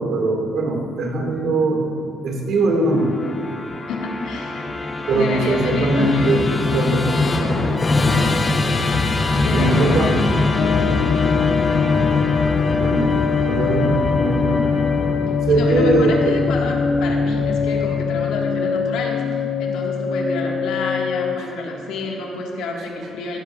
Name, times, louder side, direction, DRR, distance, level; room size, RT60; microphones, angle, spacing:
voice 1, 0.0-1.9 2.2-3.2 5.1-7.4 9.5-10.1 12.8-13.1 13.4-14.7 15.5-16.4 21.4-21.5, right 2 dB, 70° right, 0 dB, 2.0 m, -21 dB
Musical instrument, 2.9-18.2, left 3 dB, 25° left, 0.8 m, -23 dB
voice 2, 3.9-4.7 5.1-6.4 9.3-11.1 15.5-19.2 19.6-23.4, left 3 dB, 90° left, -1 dB, 1.7 m, -28 dB
sound 1, 10.6-21.4, left 6 dB, 55° left, 0.4 m, -22 dB
15.5 x 11.5 x 2.4 m, 2.5 s
cardioid pair, 105°, 0 cm